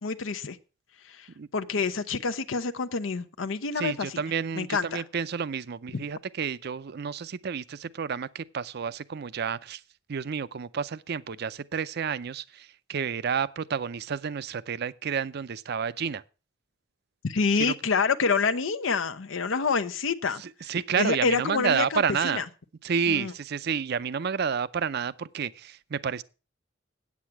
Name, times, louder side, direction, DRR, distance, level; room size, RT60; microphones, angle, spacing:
voice 1, 0.0-0.6 1.0-4.2 4.6-5.0 5.9-6.0 17.2-20.4 20.7-22.5 23.1-23.3, left 4 dB, 90° left, 0.7 m, -27 dB
voice 2, 3.8-9.8 10.1-16.2 17.6-17.7 20.7-22.4 22.8-26.2, right 6 dB, 55° right, 0.5 m, -30 dB
8.7 x 8.3 x 5.8 m
head